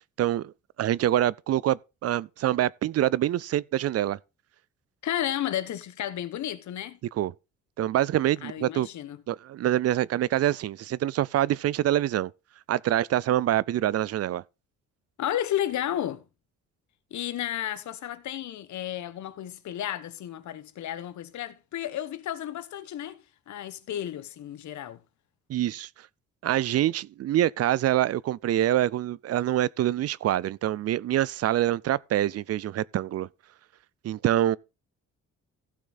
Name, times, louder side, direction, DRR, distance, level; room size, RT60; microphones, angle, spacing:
voice 1, 0.2-0.5 0.8-4.2 7.2-7.3 7.8-8.9 9.3-12.3 12.7-14.4 25.5-25.9 26.4-33.3 34.0-34.6, right 12 dB, 55° right, 0.4 m, -25 dB
voice 2, 5.0-7.0 8.4-9.2 15.2-16.2 17.1-23.2 23.5-25.0, left 11 dB, 70° left, 1.2 m, -32 dB
15.5 x 6.0 x 4.0 m
cardioid pair, 90°, 30 cm